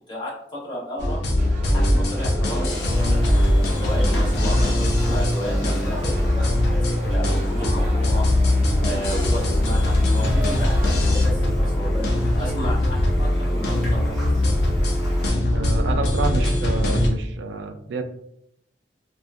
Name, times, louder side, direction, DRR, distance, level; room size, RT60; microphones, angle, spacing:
voice 1, 0.1-1.2 1.6-3.3 3.7-8.2 8.8-14.2, equal, 25° left, -7 dB, 1.1 m, -33 dB
sound 1, 1.0-17.1, left 1 dB, 70° left, 0.6 m, -21 dB
sound 2, 1.4-11.3, equal, 45° right, 0.6 m, -37 dB
Raindrop, 2.7-15.3, equal, ahead, 0.9 m, -41 dB
voice 2, 15.5-18.0, right 3 dB, 85° right, 8 dB, 0.3 m, -28 dB
2.7 x 2.3 x 2.5 m, 0.73 s
head